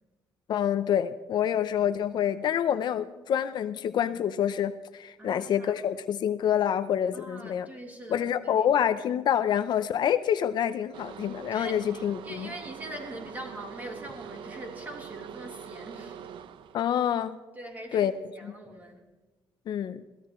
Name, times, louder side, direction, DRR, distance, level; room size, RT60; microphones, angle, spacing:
voice 1, 0.5-7.7 8.1-12.5 16.7-17.4 17.9-18.1 18.4-18.5 19.7-20.0, left 9 dB, 60° left, 11 dB, 0.7 m, -27 dB
voice 2, 5.2-5.8 7.1-8.7 11.5-16.2 17.5-19.0, right 1 dB, 20° right, 0 dB, 3.6 m, -43 dB
sound 1, 10.9-17.1, right 8 dB, 75° right, 0.8 m, -44 dB
22.0 x 17.5 x 3.2 m, 1.2 s
cardioid pair, 135°, 8 cm